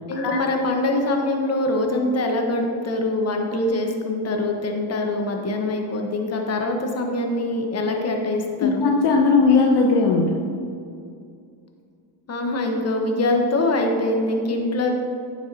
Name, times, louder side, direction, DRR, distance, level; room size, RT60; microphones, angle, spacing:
voice 1, 0.1-8.8 12.3-14.9, left 2 dB, 30° left, 3 dB, 1.2 m, -24 dB
voice 2, 8.6-10.4, left 4 dB, 55° left, 1 dB, 0.8 m, -18 dB
9.7 x 7.2 x 2.8 m, 2.4 s
supercardioid pair, 90°, 49 cm